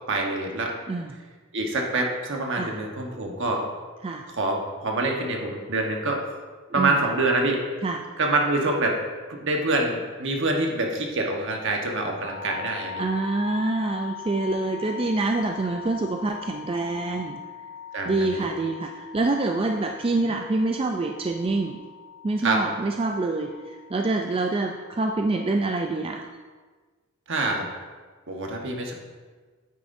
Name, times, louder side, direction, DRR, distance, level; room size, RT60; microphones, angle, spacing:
voice 1, 0.1-0.7 1.5-3.7 4.3-6.2 6.7-7.6 8.2-9.0 9.3-13.0 17.9-18.5 22.4-22.6 27.3-27.7 28.3-28.9, right 2 dB, 60° right, 1 dB, 1.2 m, -26 dB
sound 1, 12.2-26.3, left 9 dB, 65° left, 0.6 m, -41 dB
voice 2, 13.0-17.4 18.1-21.8 22.2-26.2, right 3 dB, 25° right, 3 dB, 0.4 m, -26 dB
9.3 x 8.9 x 2.6 m, 1.4 s
head